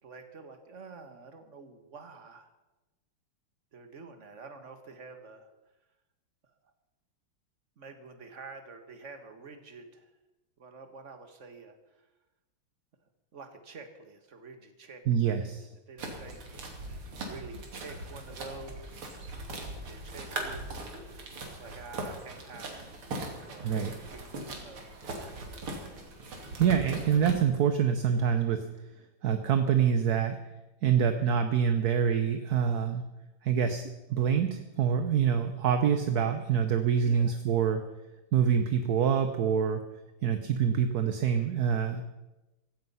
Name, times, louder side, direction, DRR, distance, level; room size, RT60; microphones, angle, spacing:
voice 1, 0.0-2.5 3.7-5.5 7.8-10.1 10.6-11.8 13.3-15.4 15.9-19.1 19.7-21.1 21.4-22.9 23.5-24.8 37.0-37.3, right 4 dB, 35° right, 7 dB, 1.8 m, -48 dB
voice 2, 15.1-15.7 23.6-23.9 26.6-28.7 29.2-30.4 30.8-33.0 33.4-33.8 34.1-37.8 38.3-39.8 40.2-42.0, right 7 dB, 55° right, 8 dB, 1.2 m, -26 dB
sound 1, 16.0-27.3, right 2 dB, 75° right, 3.4 m, -40 dB
16.0 x 15.5 x 5.6 m, 1.0 s
omnidirectional pair, 2.4 m